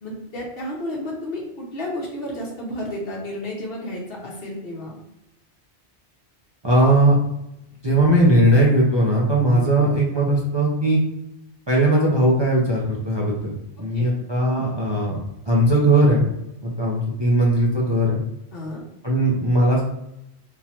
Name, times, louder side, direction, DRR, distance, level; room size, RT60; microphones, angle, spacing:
voice 1, 0.0-4.9 9.5-9.9 13.9-14.1 14.5-14.7 18.5-18.8, left 1 dB, 60° left, -2 dB, 1.1 m, -32 dB
voice 2, 6.6-7.2 7.8-11.0 11.7-15.2 15.5-16.3 16.6-18.2 19.0-19.8, right 1 dB, 25° right, -5 dB, 0.7 m, -18 dB
3.7 x 3.0 x 2.9 m, 0.84 s
omnidirectional pair, 1.2 m